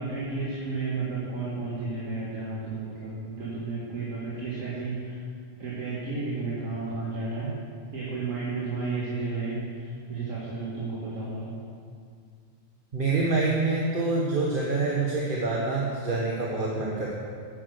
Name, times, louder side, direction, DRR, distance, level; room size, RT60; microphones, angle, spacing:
voice 1, 0.0-5.2 5.6-7.5 7.9-11.5, right 3 dB, 80° right, -7 dB, 2.4 m, -32 dB
voice 2, 12.9-17.1, right 3 dB, 45° right, -3 dB, 1.4 m, -26 dB
10.0 x 9.8 x 6.4 m, 2.2 s
omnidirectional pair, 1.4 m